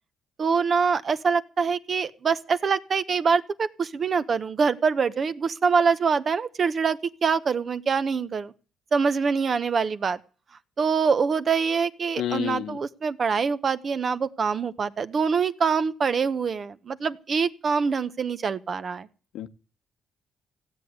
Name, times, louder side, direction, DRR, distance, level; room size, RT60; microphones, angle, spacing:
voice 1, 0.4-8.5 8.9-10.2 10.8-19.1, right 5 dB, 45° right, 1.0 m, -24 dB
voice 2, 12.2-12.8 19.3-19.5, left 11 dB, 85° left, 1.1 m, -29 dB
16.0 x 8.2 x 9.4 m
cardioid pair, 90°, 0 cm